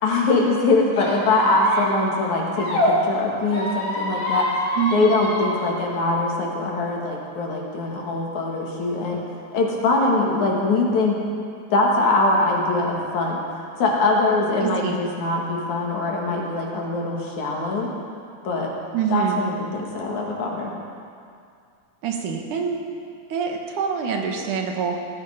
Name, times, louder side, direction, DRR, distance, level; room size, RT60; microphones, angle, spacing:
voice 1, 0.0-4.5 4.9-9.2 9.5-11.2 11.7-13.4 13.8-17.9 18.4-18.7 19.1-20.7, left 2 dB, 70° left, -1 dB, 3.4 m, -22 dB
Squeak, 0.9-2.9 3.5-5.6, left 1 dB, 55° left, 3.4 m, -27 dB
voice 2, 4.8-5.1 14.6-14.9 18.9-19.4 22.0-22.8 23.3-25.0, right 7 dB, 85° right, 2 dB, 2.9 m, -25 dB
18.0 x 13.5 x 5.1 m, 2.3 s
omnidirectional pair, 3.5 m